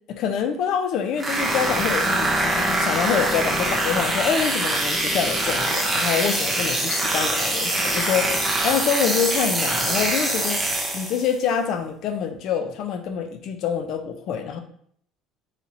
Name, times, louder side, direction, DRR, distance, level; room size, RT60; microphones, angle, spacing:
voice 1, 0.1-10.6 10.9-14.6, left 7 dB, 50° left, 7 dB, 0.4 m, -26 dB
sound 1, 1.2-11.3, right 1 dB, 10° right, 0.5 m, -24 dB
4.0 x 2.9 x 2.5 m, 0.63 s
cardioid pair, 155°, 0 cm